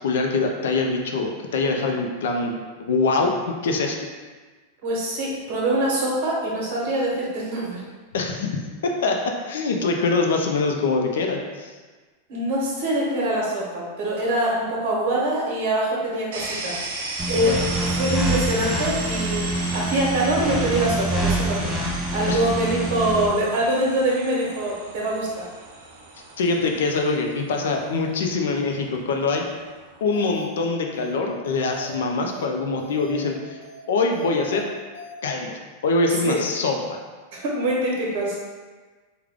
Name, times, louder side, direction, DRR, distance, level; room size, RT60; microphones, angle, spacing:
voice 1, 0.0-4.1 8.1-8.5 8.8-9.2 9.5-11.7 22.3-22.4 26.4-29.5 30.0-33.6 33.9-34.7 35.2-37.0, left 3 dB, 90° left, 2 dB, 0.5 m, -24 dB
voice 2, 4.8-7.8 12.3-16.9 17.3-21.7 22.1-25.4 36.2-36.4 37.3-38.4, right 1 dB, 55° right, -4 dB, 1.1 m, -24 dB
sound 1, 16.3-30.0, right 3 dB, 70° right, 0.6 m, -36 dB
sound 2, 17.2-23.3, right 2 dB, ahead, 0.5 m, -26 dB
sound 3, 30.1-30.6 30.9-31.1 31.4-32.0 32.3-32.5 32.8-33.3 33.6-33.8 34.1-34.6 34.9-35.1, right 1 dB, 70° left, 0.9 m, -40 dB
3.6 x 2.3 x 3.5 m, 1.4 s
supercardioid pair, 165°, 0 cm